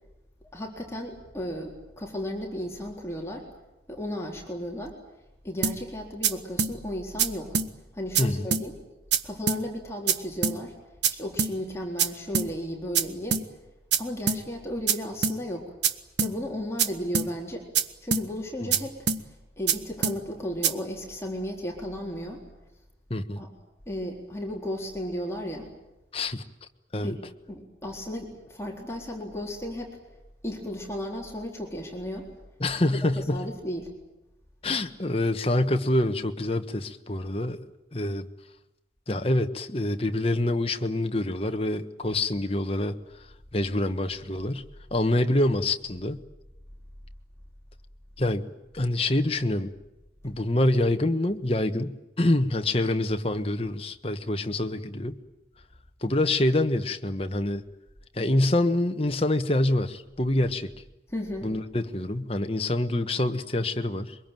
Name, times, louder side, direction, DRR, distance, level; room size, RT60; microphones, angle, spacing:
voice 1, 0.5-3.5 3.9-5.0 5.4-7.5 7.9-8.7 9.2-10.7 11.1-13.4 14.0-15.7 16.2-17.7 18.0-19.0 19.6-22.4 23.4-23.5 23.9-25.7 27.0-27.2 27.5-30.0 30.4-32.3 32.9-33.9 61.1-61.5, equal, 15° left, 0 dB, 4.0 m, -34 dB
sound 1, 5.6-5.8 6.2-6.3 6.6-6.7 7.2-7.3 7.5-7.7 8.1-8.2 8.5-8.6 9.1-9.2 9.5-9.6 10.1-10.2 10.4-10.6 11.0-11.1 11.4-11.5 12.0-12.1 12.3-12.5 12.9-13.0 13.3-13.4 13.9-14.0 14.3-14.4 14.9-15.0 15.2-15.4 15.8-15.9 16.2-16.3 16.8-16.9 17.1-17.3 17.7-17.8 18.1-18.2 18.7-18.8 19.1-19.2 19.7-19.8 20.0-20.2 20.6-20.7, right 6 dB, 75° right, 1.3 m, -24 dB
voice 2, 23.1-23.4 26.1-26.4 26.9-27.2 32.6-33.4 34.6-37.6 37.9-38.3 39.1-42.9 43.5-44.6 44.9-46.2 48.2-48.5 48.7-49.7 50.2-55.2 56.0-57.6 58.1-60.7 61.4-64.2, left 1 dB, 30° left, 7 dB, 1.4 m, -26 dB
23.5 x 22.5 x 9.2 m, 0.98 s
head